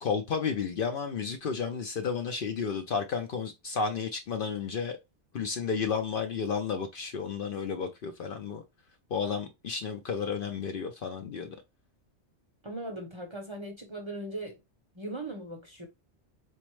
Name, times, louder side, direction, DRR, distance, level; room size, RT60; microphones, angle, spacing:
voice 1, 0.0-5.0 5.3-8.6 9.1-11.6, left 6 dB, 60° left, 0.7 m, -32 dB
voice 2, 12.6-14.6 14.9-15.9, right 1 dB, 30° right, 0.7 m, -39 dB
4.4 x 2.1 x 3.0 m
omnidirectional pair, 1.2 m